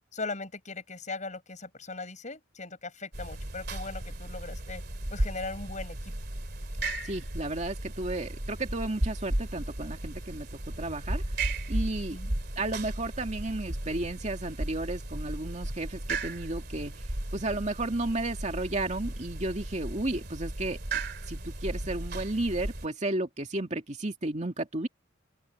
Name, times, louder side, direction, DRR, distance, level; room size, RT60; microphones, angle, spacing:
voice 1, 0.1-4.8 5.1-6.1 12.1-12.3, left 3 dB, 40° left, 6.7 m, -39 dB
sound 1, 3.1-22.9, right 1 dB, 55° right, 2.8 m, -35 dB
voice 2, 7.0-10.5 10.8-11.2 11.7-12.2 12.6-16.9 17.3-20.8 21.3-24.9, right 2 dB, 35° right, 2.4 m, -33 dB
open air
head